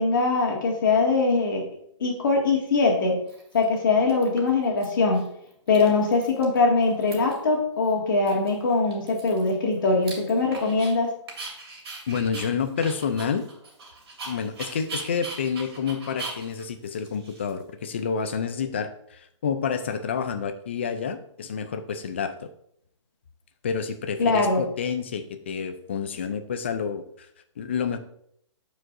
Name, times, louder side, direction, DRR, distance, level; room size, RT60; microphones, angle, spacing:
voice 1, 0.0-1.7 2.0-3.2 3.5-5.3 5.7-11.1 24.2-24.6, left 3 dB, 40° left, -1 dB, 1.9 m, -22 dB
Dog, 2.5-2.6 3.3-3.8 4.1-4.8 5.1-5.3 5.5-6.6 6.8-7.5 7.8-7.9 8.3-10.9 11.3-17.9, right 3 dB, 50° right, 2.6 m, -40 dB
voice 2, 12.1-13.4 14.3-22.5 23.6-27.3 27.6-28.0, left 6 dB, 25° left, 10 dB, 0.4 m, -29 dB
12.5 x 4.8 x 2.6 m, 0.70 s
hypercardioid pair, 170°, 16 cm